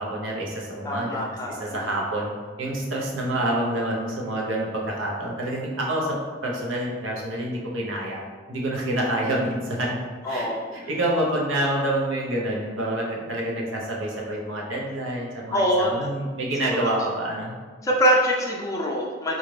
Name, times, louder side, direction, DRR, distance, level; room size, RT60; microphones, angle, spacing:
voice 1, 0.0-1.2 1.6-2.3 2.6-8.2 8.5-10.0 10.3-17.5, right 1 dB, 80° right, -2 dB, 0.8 m, -27 dB
voice 2, 0.8-1.8 10.2-10.7 15.5-16.0 16.7-17.0 17.8-19.4, equal, 15° left, -3 dB, 0.4 m, -24 dB
3.9 x 2.4 x 3.2 m, 1.5 s
head